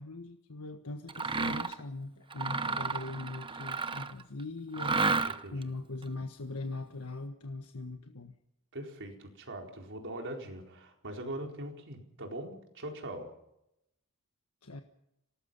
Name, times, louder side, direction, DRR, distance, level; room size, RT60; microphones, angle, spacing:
voice 1, 0.0-8.3 14.6-14.8, left 2 dB, 80° left, 5 dB, 1.5 m, -41 dB
Mechanisms, 1.1-1.8 2.3-4.2 4.7-5.6, right 4 dB, 25° right, 0.9 m, -32 dB
voice 2, 5.2-5.7 8.7-13.3, right 1 dB, 60° right, 2 dB, 4.4 m, -42 dB
27.0 x 19.0 x 5.6 m, 0.83 s
head